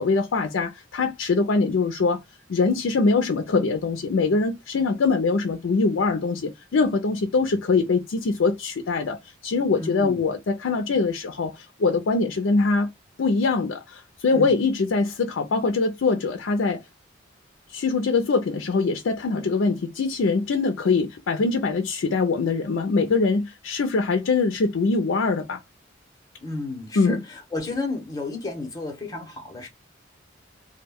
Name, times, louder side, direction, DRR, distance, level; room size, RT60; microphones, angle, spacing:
voice 1, 0.0-2.2 2.5-9.2 9.4-12.9 13.2-16.8 17.7-25.6 27.0-27.2, left 4 dB, 75° left, 0.4 m, -23 dB
voice 2, 9.7-10.2 14.3-14.6 26.4-29.7, left 3 dB, 20° left, 0.8 m, -32 dB
2.2 x 2.2 x 3.3 m
head